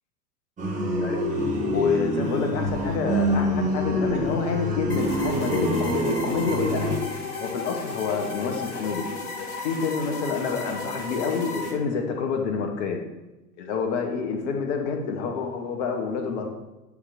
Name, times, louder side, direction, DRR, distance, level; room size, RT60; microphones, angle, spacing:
sound 1, 0.6-7.0, equal, 15° right, 1.5 m, -26 dB
voice 1, 1.0-7.1 7.4-9.0 9.4-13.0 13.6-16.5, left 5 dB, 45° left, 4 dB, 1.3 m, -28 dB
sound 2, 4.9-11.7, left 3 dB, 60° left, 1.9 m, -35 dB
9.6 x 3.5 x 5.9 m, 1.0 s
figure-of-eight pair, 90°, 49 cm